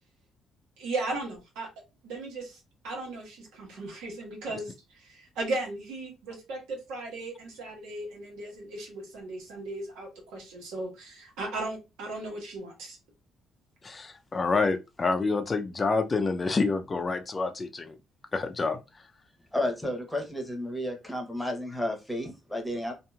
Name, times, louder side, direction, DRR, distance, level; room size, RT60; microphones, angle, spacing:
voice 1, 0.8-1.7 2.0-2.6 2.8-13.0, right 2 dB, 85° right, 1.2 m, -36 dB
voice 2, 13.8-17.9 18.3-18.8, left 3 dB, 30° left, 0.5 m, -27 dB
voice 3, 19.5-22.9, left 1 dB, 5° left, 1.0 m, -32 dB
2.9 x 2.5 x 2.3 m
supercardioid pair, 75°, 0 cm